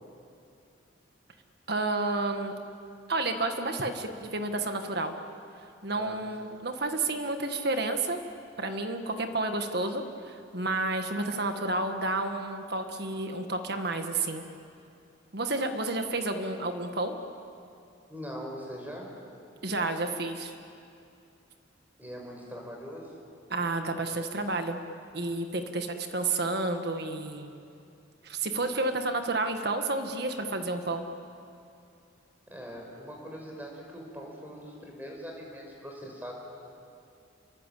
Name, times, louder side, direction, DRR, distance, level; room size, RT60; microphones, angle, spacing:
voice 1, 1.7-2.5 3.1-5.1 5.8-8.2 8.6-14.4 15.3-17.1 19.6-20.5 23.5-24.8 25.1-27.5 28.2-31.1, right 2 dB, 55° right, 6 dB, 1.7 m, -30 dB
voice 2, 18.1-19.1 22.0-23.2 32.5-36.3, equal, 10° right, -1 dB, 5.6 m, -42 dB
29.5 x 23.0 x 8.5 m, 2.6 s
head